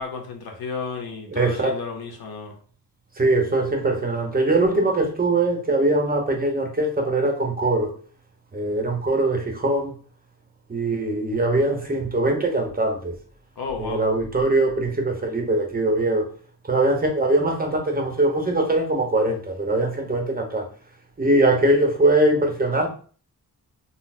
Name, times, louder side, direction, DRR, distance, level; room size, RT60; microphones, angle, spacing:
voice 1, 0.0-2.6 13.6-14.1, left 5 dB, 90° left, 0.7 m, -32 dB
voice 2, 1.4-1.8 3.2-7.9 8.5-10.0 10.7-13.1 13.8-16.3 16.7-20.7 21.2-22.9, right 2 dB, 25° right, 0.7 m, -22 dB
3.9 x 2.0 x 2.6 m
wide cardioid pair, 115°, 36 cm